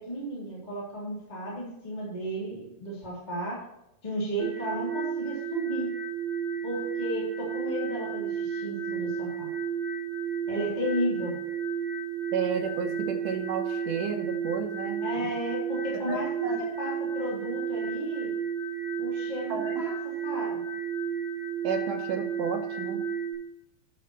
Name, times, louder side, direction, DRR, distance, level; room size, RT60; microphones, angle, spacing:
voice 1, 0.0-3.7 4.0-5.9 6.6-9.5 10.5-11.4 15.0-18.3 19.0-19.9 20.2-20.6, equal, 10° left, -6 dB, 3.4 m, -34 dB
sound 1, 4.4-23.3, right 7 dB, 40° left, 5.2 m, -32 dB
voice 2, 12.3-15.3 16.1-16.2 16.4-16.6 19.5-19.7 21.6-23.0, right 6 dB, 70° right, 4 dB, 2.6 m, -32 dB
12.0 x 6.5 x 4.4 m, 0.86 s
omnidirectional pair, 3.9 m